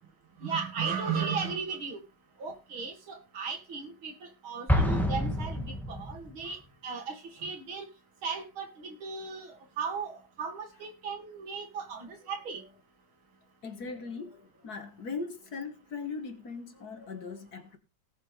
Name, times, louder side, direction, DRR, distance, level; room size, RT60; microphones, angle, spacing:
voice 1, 0.4-2.0 2.4-6.6 6.8-7.8 8.2-12.6, right 5 dB, 80° right, 3.2 m, -36 dB
Explosion, 4.7-6.4, left 1 dB, ahead, 2.1 m, -28 dB
voice 2, 13.6-17.8, left 4 dB, 50° left, 2.2 m, -39 dB
19.0 x 7.5 x 3.4 m
omnidirectional pair, 2.2 m